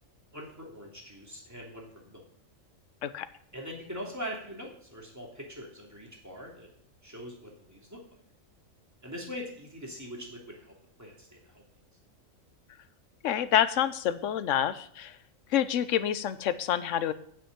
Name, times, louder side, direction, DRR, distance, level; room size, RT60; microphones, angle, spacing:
voice 1, 0.3-2.2 3.5-6.7 7.0-8.0 9.0-10.7 11.0-11.6, equal, 10° right, -2 dB, 2.9 m, -42 dB
voice 2, 13.2-15.2 15.5-17.1, left 10 dB, 70° left, 13 dB, 1.0 m, -27 dB
9.1 x 6.9 x 8.8 m, 0.62 s
omnidirectional pair, 1.4 m